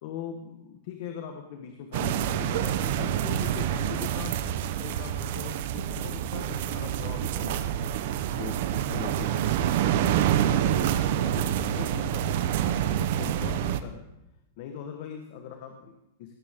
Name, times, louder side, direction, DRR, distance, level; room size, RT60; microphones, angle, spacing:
voice 1, 0.0-4.3 4.6-7.8 8.3-9.4 9.7-10.4 11.1-12.3 12.6-14.1 14.6-16.3, left 8 dB, 50° left, 4 dB, 1.4 m, -41 dB
sound 1, 1.9-13.8, right 10 dB, 55° right, 0.9 m, -27 dB
18.0 x 14.0 x 3.7 m, 0.89 s
supercardioid pair, 160°, 0 cm